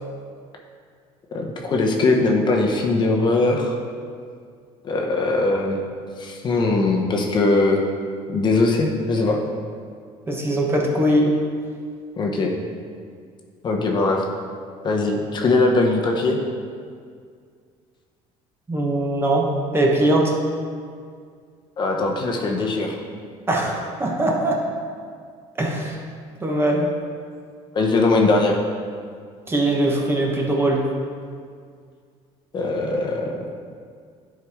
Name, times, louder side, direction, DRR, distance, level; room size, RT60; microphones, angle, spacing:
voice 1, 1.3-3.8 4.8-5.8 6.2-7.8 8.3-9.4 12.2-12.5 13.6-14.2 14.8-16.4 21.8-23.0 27.7-28.6 32.5-33.6, left 3 dB, 35° left, 0 dB, 0.9 m, -20 dB
voice 2, 10.3-11.3 18.7-19.5 19.7-20.3 23.5-24.6 25.6-26.0 26.4-26.9 29.5-30.8, right 1 dB, 15° right, -1 dB, 1.1 m, -21 dB
11.0 x 4.7 x 3.6 m, 2.1 s
cardioid pair, 135°, 13 cm